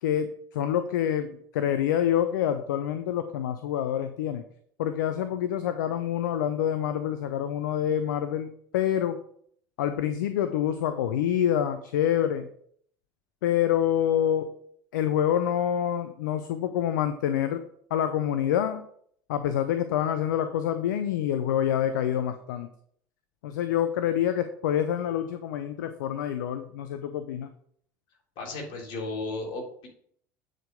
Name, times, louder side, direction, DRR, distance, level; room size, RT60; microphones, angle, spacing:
voice 1, 0.0-4.4 4.8-9.2 9.8-12.5 13.4-14.5 14.9-17.6 17.9-18.8 19.3-22.7 23.4-27.5, left 10 dB, 75° left, 10 dB, 0.5 m, -27 dB
voice 2, 28.4-29.9, left 2 dB, 55° left, -2 dB, 3.4 m, -34 dB
8.8 x 4.9 x 5.1 m, 0.65 s
hypercardioid pair, 70°, 10 cm